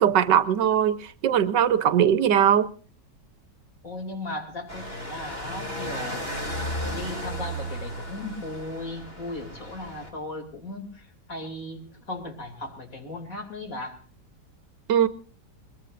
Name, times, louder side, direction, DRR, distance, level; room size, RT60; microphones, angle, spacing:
voice 1, 0.0-2.7 14.9-15.1, right 9 dB, 90° right, 1.6 m, -20 dB
voice 2, 3.8-6.3 6.9-14.0, left 2 dB, 50° left, 3.4 m, -37 dB
sound 1, 4.7-10.1, equal, 35° left, 3.0 m, -34 dB
21.5 x 21.5 x 2.6 m
omnidirectional pair, 1.8 m